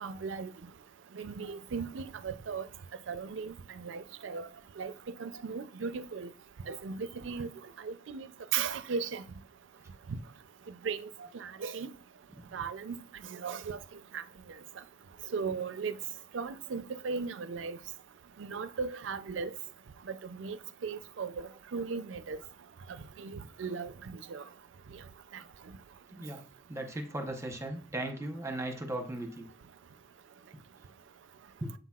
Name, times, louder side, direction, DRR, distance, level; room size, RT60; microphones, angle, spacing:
voice 1, 0.0-0.5 1.2-2.6 3.1-3.5 3.8-4.5 4.8-4.9 5.2-6.3 6.7-7.5 7.8-8.3 8.5-9.2 10.8-11.1 11.4-11.9 12.5-13.0 13.3-13.8 14.1-14.2 15.3-15.9 16.3-17.8 18.4-19.5 20.1-20.6 20.8-22.4 23.2-23.9 24.3-24.4, right 5 dB, 75° right, 0.4 m, -36 dB
voice 2, 26.1-26.4 26.7-29.5 31.6-31.7, right 1 dB, 15° right, 0.8 m, -37 dB
7.8 x 5.7 x 2.4 m
head